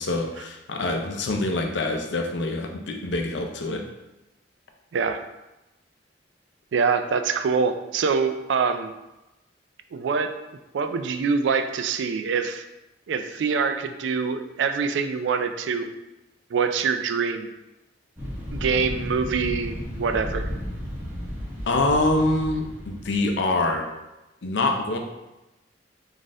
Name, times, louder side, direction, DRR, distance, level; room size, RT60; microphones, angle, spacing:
voice 1, 0.0-3.8 21.7-23.9 24.4-25.0, left 2 dB, 65° left, 3 dB, 0.6 m, -25 dB
voice 2, 6.7-8.9 9.9-10.3 10.7-12.6 13.1-15.9 16.5-17.5 18.5-20.5, right 5 dB, 70° right, 8 dB, 0.3 m, -25 dB
sound 1, 18.2-23.4, equal, 10° right, 1.0 m, -33 dB
4.0 x 2.5 x 3.6 m, 1.0 s
head